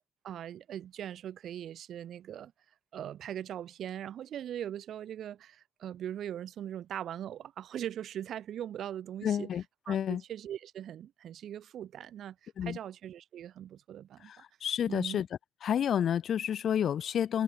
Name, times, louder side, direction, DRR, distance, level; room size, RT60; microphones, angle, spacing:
voice 1, 0.2-2.5 2.9-9.5 9.9-14.3 14.9-15.2, right 10 dB, 70° right, 2.3 m, -40 dB
voice 2, 9.2-10.2 12.6-12.8 14.3-15.3 15.6-17.4, left 9 dB, 60° left, 1.2 m, -30 dB
cardioid pair, 90°, 0 cm